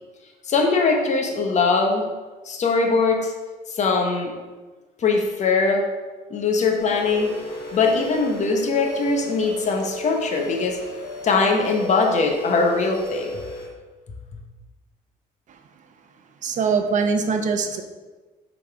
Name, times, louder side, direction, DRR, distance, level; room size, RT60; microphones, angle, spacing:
voice 1, 0.5-2.0 2.4-3.3 3.7-4.3 5.0-5.8 6.3-7.3 7.7-10.8 11.2-13.4, left 4 dB, 45° left, 2 dB, 1.1 m, -21 dB
sound 1, 6.8-13.7, left 1 dB, 85° left, 1.8 m, -33 dB
voice 2, 16.4-17.8, right 5 dB, 45° right, 6 dB, 0.8 m, -22 dB
5.5 x 4.1 x 4.8 m, 1.3 s
cardioid pair, 110°, 17 cm